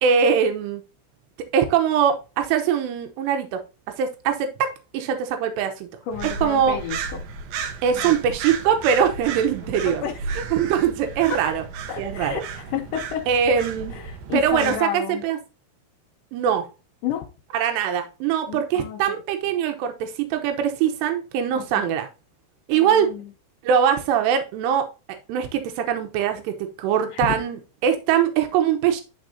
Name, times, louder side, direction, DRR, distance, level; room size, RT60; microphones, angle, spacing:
voice 1, 0.0-0.8 1.5-3.6 4.0-5.9 6.4-6.8 7.8-10.0 10.5-11.6 12.0-12.4 13.3-14.0 14.3-15.4 16.3-16.7 17.5-22.1 22.7-23.1 23.6-24.9 25.3-29.0, right 8 dB, 90° right, 6 dB, 3.1 m, -22 dB
voice 2, 6.1-7.2 7.9-8.2 9.6-10.2 11.3-11.4 11.9-13.3 13.9-15.2 17.0-17.3 18.5-19.2 21.6-21.9 22.7-23.3 27.1-27.4, left 8 dB, 75° left, 0 dB, 2.0 m, -31 dB
sound 1, 6.1-14.8, right 5 dB, 75° right, 2.5 m, -34 dB
11.0 x 4.5 x 2.6 m, 0.31 s
omnidirectional pair, 4.8 m